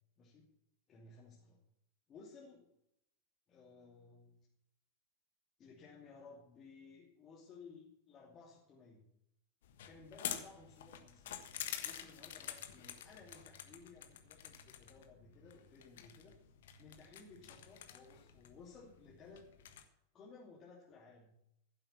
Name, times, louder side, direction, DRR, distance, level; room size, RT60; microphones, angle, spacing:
voice 1, 0.9-1.6 2.1-2.7 3.5-4.4 5.6-9.0 9.8-11.4 11.8-16.4 16.8-19.5 20.1-21.4, left 4 dB, 25° left, -4 dB, 2.8 m, -58 dB
sound 1, 9.6-19.8, left 10 dB, 55° left, 1.4 m, -48 dB
15.0 x 7.9 x 7.2 m, 0.80 s
figure-of-eight pair, 90°, 0 cm